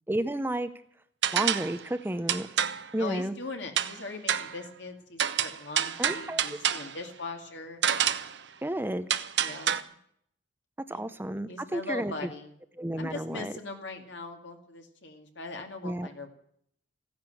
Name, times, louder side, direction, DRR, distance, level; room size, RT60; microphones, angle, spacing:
voice 1, 0.1-0.7 1.3-2.5 2.9-3.3 6.0-6.4 8.6-9.1 10.9-12.3 12.8-13.5 15.8-16.1, right 1 dB, 10° right, 11 dB, 0.6 m, -31 dB
sound 1, 1.2-1.8 2.3-2.9 3.8-4.0 4.3-4.6 5.2-7.0 7.8-8.4 9.1-9.8, right 9 dB, 65° right, 0.8 m, -28 dB
voice 2, 3.0-7.8 9.4-9.7 10.9-11.0 11.5-12.5 13.0-16.3, left 3 dB, 75° left, 4 dB, 2.3 m, -40 dB
15.0 x 10.5 x 7.7 m, 0.68 s
head